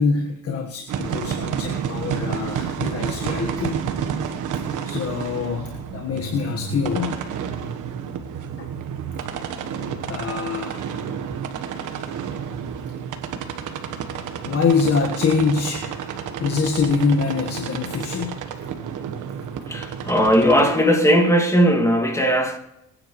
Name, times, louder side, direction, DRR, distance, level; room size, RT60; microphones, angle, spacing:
voice 1, 0.0-3.8 4.5-7.2 8.6-8.7 10.0-10.9 14.4-15.9 16.4-18.4, left 5 dB, 50° left, 1.6 m, -24 dB
sound 1, 0.9-20.7, right 7 dB, 80° right, 1.4 m, -30 dB
voice 2, 19.7-22.6, equal, 10° left, 2.3 m, -18 dB
23.5 x 9.9 x 3.2 m
cardioid pair, 90°, 30 cm